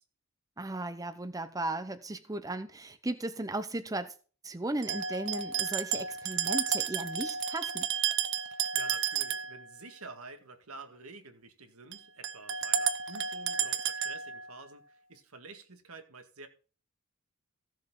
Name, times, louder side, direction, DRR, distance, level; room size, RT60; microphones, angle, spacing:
voice 1, 0.6-4.1 4.4-7.9, right 2 dB, 15° right, 0.7 m, -36 dB
sound 1, 4.8-9.6 11.9-12.0 12.2-14.5, right 7 dB, 60° right, 0.8 m, -32 dB
voice 2, 8.5-16.5, right 3 dB, 80° right, 1.9 m, -49 dB
15.5 x 7.2 x 3.8 m
head